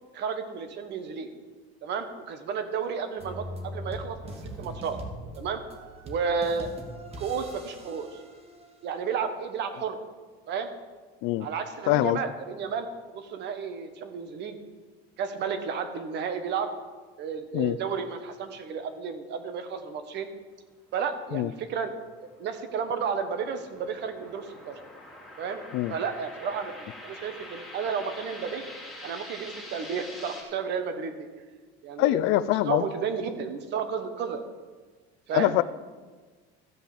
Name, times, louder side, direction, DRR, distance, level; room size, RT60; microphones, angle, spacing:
voice 1, 0.1-1.3 1.8-4.2 4.6-5.0 5.4-5.6 6.0-6.7 7.2-8.2 8.8-10.0 10.5-10.7 11.4-12.9 13.1-14.6 15.2-16.7 17.2-20.3 20.9-21.9 22.4-24.8 25.4-25.6 25.9-28.7 29.0-31.3 31.8-34.4 35.3-35.5, right 6 dB, 55° right, 8 dB, 1.3 m, -32 dB
sound 1, 3.2-9.0, equal, 30° right, 1.7 m, -41 dB
voice 2, 11.9-12.2 17.5-17.8 21.3-21.5 25.7-25.9 32.0-32.8 35.3-35.6, left 16 dB, 65° left, 17 dB, 0.5 m, -23 dB
sound 2, 22.0-30.4, left 1 dB, ahead, 3.0 m, -45 dB
13.5 x 5.3 x 7.6 m, 1.4 s
cardioid pair, 120°, 21 cm